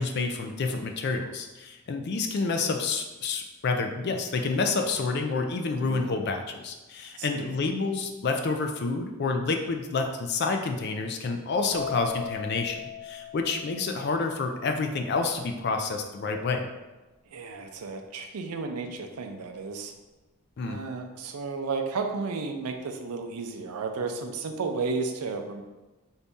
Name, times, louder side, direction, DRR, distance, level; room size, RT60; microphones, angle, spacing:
voice 1, 0.0-16.7 20.6-20.8, left 4 dB, 45° left, 4 dB, 0.3 m, -29 dB
voice 2, 5.8-6.1 7.2-7.5 17.3-19.9 20.6-25.6, right 4 dB, 85° right, 5 dB, 0.5 m, -33 dB
sound 1, 11.7-15.3, left 7 dB, 90° left, 1.0 m, -39 dB
4.0 x 2.7 x 3.5 m, 1.1 s
head